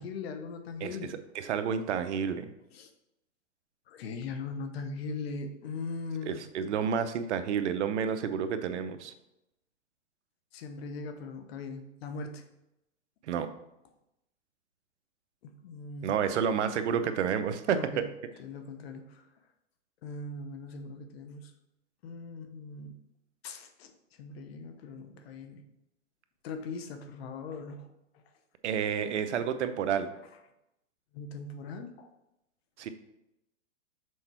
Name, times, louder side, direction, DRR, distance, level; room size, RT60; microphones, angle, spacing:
voice 1, 0.0-1.1 2.7-2.9 3.9-6.4 10.5-12.4 15.4-16.1 17.7-18.0 18.4-19.2 20.0-21.5 22.0-23.0 23.4-23.9 24.2-25.6 26.4-27.9 31.1-32.1, left 4 dB, 55° left, 7 dB, 1.0 m, -40 dB
voice 2, 0.8-2.5 6.3-9.1 13.3-13.5 16.0-18.1 28.6-30.1 32.8-32.9, right 7 dB, 65° right, 9 dB, 0.8 m, -30 dB
6.5 x 4.4 x 4.5 m, 0.87 s
hypercardioid pair, 145°, 37 cm